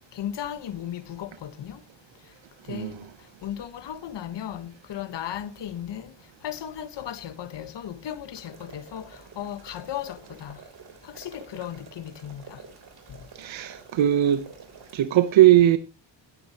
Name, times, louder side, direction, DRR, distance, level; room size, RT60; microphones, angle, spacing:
voice 1, 0.1-1.8 2.7-3.0 3.4-6.1 6.4-10.6 11.0-12.6, left 10 dB, 65° left, 1.3 m, -36 dB
sound 1, 8.3-15.0, right 5 dB, 55° right, 3.5 m, -49 dB
voice 2, 13.4-14.4 14.9-15.8, right 12 dB, 75° right, 1.0 m, -19 dB
17.0 x 10.0 x 2.9 m
wide cardioid pair, 140°, 46 cm